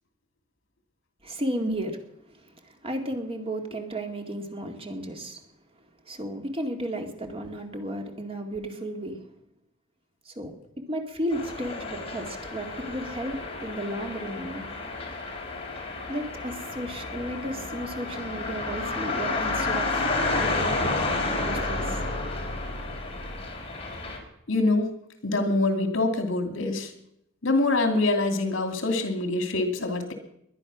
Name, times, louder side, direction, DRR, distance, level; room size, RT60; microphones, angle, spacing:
voice 1, 1.2-2.0 2.3-5.4 6.1-9.2 10.3-10.5 10.9-14.6 16.1-20.1 20.4-20.9 21.4-22.0, right 1 dB, 30° right, 4 dB, 2.3 m, -33 dB
sound 1, 11.3-24.2, left 2 dB, 30° left, 3.7 m, -31 dB
voice 2, 24.5-24.9 25.2-26.9 27.4-30.1, left 2 dB, 70° left, 6 dB, 2.6 m, -25 dB
21.0 x 11.0 x 6.2 m, 0.76 s
head